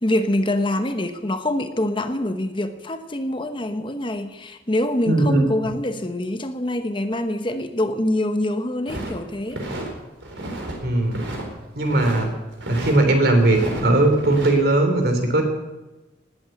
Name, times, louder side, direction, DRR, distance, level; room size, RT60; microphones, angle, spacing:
voice 1, 0.0-9.6, left 1 dB, 25° left, 8 dB, 1.0 m, -25 dB
voice 2, 5.1-5.4 10.8-11.2 11.7-12.3 12.7-15.4, right 2 dB, 55° right, 5 dB, 3.3 m, -18 dB
sound 1, 8.9-9.9 10.2-10.8 11.0-12.3 12.6-13.0 13.4-14.5, right 1 dB, 90° right, 4.2 m, -32 dB
19.0 x 8.9 x 7.9 m, 1.1 s
head